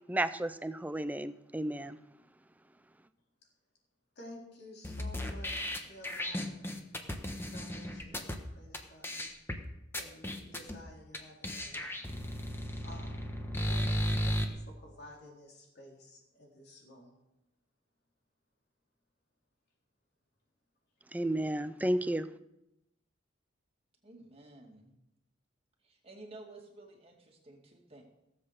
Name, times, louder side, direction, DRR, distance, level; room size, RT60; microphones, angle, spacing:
voice 1, 0.1-2.0 21.1-22.3, right 1 dB, 10° right, 12 dB, 0.5 m, -32 dB
voice 2, 4.2-6.7 7.5-9.7 10.0-12.0 12.4-13.2 13.6-17.1, left 1 dB, 55° left, -1 dB, 3.9 m, -53 dB
sound 1, 4.8-8.4 8.7-8.8 9.0-9.6 9.9-10.8 11.1-11.2 11.4-14.4, equal, 10° left, 1.3 m, -35 dB
voice 3, 24.0-24.9 25.8-28.0, right 2 dB, 30° right, 1 dB, 2.4 m, -52 dB
17.5 x 7.8 x 6.6 m, 0.88 s
head